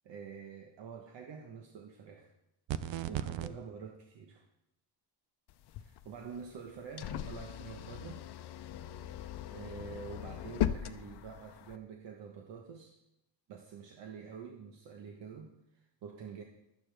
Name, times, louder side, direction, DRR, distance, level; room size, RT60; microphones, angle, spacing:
voice 1, 0.0-2.3 3.1-4.5 5.8-8.2 9.0-13.0 13.5-16.4, right 6 dB, 75° right, 2 dB, 1.4 m, -47 dB
sound 1, 2.7-3.5, right 11 dB, 90° right, 0.8 m, -35 dB
sound 2, 5.5-11.8, left 11 dB, 60° left, 0.7 m, -39 dB
15.5 x 12.0 x 3.5 m, 0.86 s
cardioid pair, 165°, 44 cm